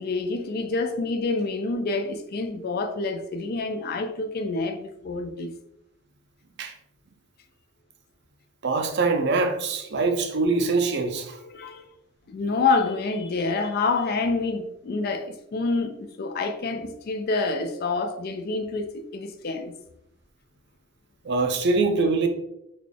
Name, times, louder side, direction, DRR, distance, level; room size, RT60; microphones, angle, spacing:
voice 1, 0.0-5.5 11.4-11.8 12.3-19.7, left 3 dB, 45° left, 0.3 m, -27 dB
voice 2, 8.6-11.4 21.2-22.3, right 3 dB, 55° right, 0.5 m, -23 dB
3.8 x 2.3 x 3.3 m
head